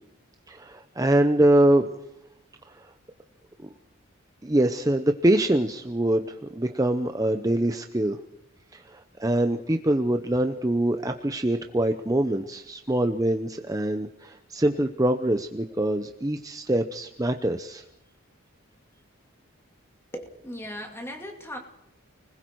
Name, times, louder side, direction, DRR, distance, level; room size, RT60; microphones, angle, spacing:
voice 1, 0.5-1.9 2.7-2.9 3.6-3.7 4.4-8.2 8.7-17.8, right 1 dB, 15° right, 6 dB, 0.7 m, -24 dB
voice 2, 20.1-21.6, equal, 10° left, 3 dB, 2.6 m, -37 dB
30.0 x 20.5 x 4.6 m, 0.88 s
head